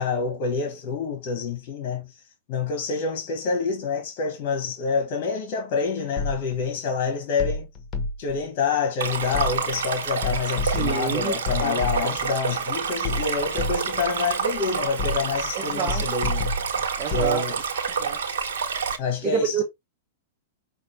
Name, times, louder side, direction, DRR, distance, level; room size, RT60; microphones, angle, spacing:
voice 1, 0.0-2.1 2.5-7.7 8.2-16.5 17.1-17.6 19.0-19.6, left 5 dB, 45° left, 1.3 m, -27 dB
sound 1, 6.2-6.7 7.4-8.4 9.3-9.9 10.2-12.3 13.0-14.1 15.0-15.5 15.9-17.4, left 3 dB, 25° left, 1.5 m, -29 dB
Stream, 9.0-19.0, right 6 dB, 80° right, 1.1 m, -28 dB
voice 2, 10.7-12.1 15.5-16.1 17.0-17.4 18.0-18.2 19.2-19.6, right 7 dB, 30° right, 1.1 m, -28 dB
5.7 x 2.5 x 3.2 m
hypercardioid pair, 135°, 0 cm